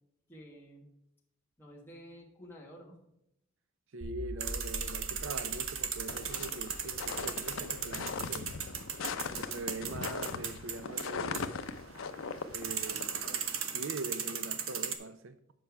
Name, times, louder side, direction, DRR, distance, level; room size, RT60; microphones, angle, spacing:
voice 1, 0.3-0.9 1.6-3.0, equal, 10° left, 1.4 m, -51 dB
voice 2, 3.9-8.5 9.4-11.5 12.5-13.2 13.7-15.4, right 3 dB, 70° right, 0.6 m, -42 dB
sound 1, 4.0-11.2, equal, 45° right, 1.2 m, -46 dB
sound 2, 4.4-15.0, right 8 dB, 85° right, 0.9 m, -38 dB
sound 3, 6.1-13.6, left 5 dB, 85° left, 0.6 m, -40 dB
7.8 x 5.6 x 4.6 m
head